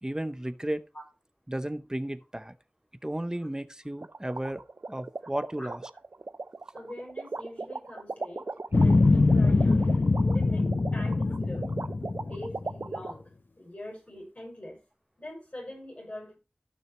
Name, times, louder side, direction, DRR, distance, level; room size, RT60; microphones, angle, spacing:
voice 1, 0.0-0.8 1.5-2.5 3.0-5.8, right 1 dB, 20° right, 0.8 m, -34 dB
sound 1, 4.0-13.1, right 3 dB, 90° right, 0.5 m, -37 dB
voice 2, 6.7-9.9 10.3-11.7 12.2-13.2 13.6-14.8 15.2-16.4, left 1 dB, 45° left, 6.4 m, -43 dB
sound 2, 8.7-13.0, left 3 dB, 80° left, 0.9 m, -23 dB
15.0 x 6.3 x 3.0 m
wide cardioid pair, 55°, 3 cm